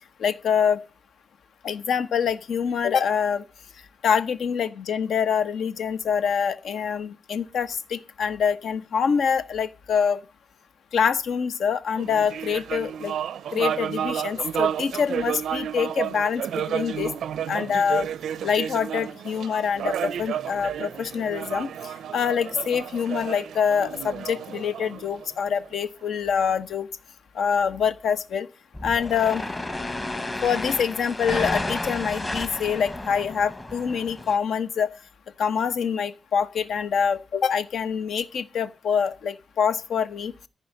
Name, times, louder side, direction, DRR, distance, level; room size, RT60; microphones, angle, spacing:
voice 1, 0.2-0.8 1.6-3.4 4.0-10.2 10.9-13.1 13.5-17.1 17.5-18.1 18.4-21.7 22.1-26.9 27.3-28.5 28.8-29.4 30.4-34.9 35.4-40.3, left 7 dB, 65° left, 1.1 m, -25 dB
sound 1, 12.0-25.7, right 9 dB, 85° right, 0.6 m, -31 dB
sound 2, 28.7-34.3, left 2 dB, 15° left, 1.3 m, -32 dB
14.0 x 5.5 x 9.1 m
wide cardioid pair, 175°, 0 cm